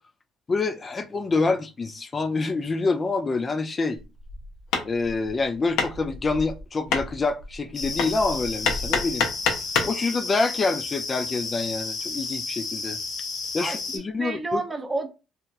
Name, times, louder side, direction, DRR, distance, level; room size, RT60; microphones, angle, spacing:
voice 1, 0.5-4.0 4.8-9.3 9.8-13.0 13.5-14.6, left 3 dB, 30° left, 0.3 m, -26 dB
Hammer, 4.0-10.0, left 5 dB, 80° left, 0.6 m, -29 dB
sound 1, 7.7-14.0, left 4 dB, 55° left, 0.8 m, -32 dB
voice 2, 13.6-15.1, right 3 dB, 20° right, 0.5 m, -30 dB
2.9 x 2.3 x 2.4 m
supercardioid pair, 85°, 0 cm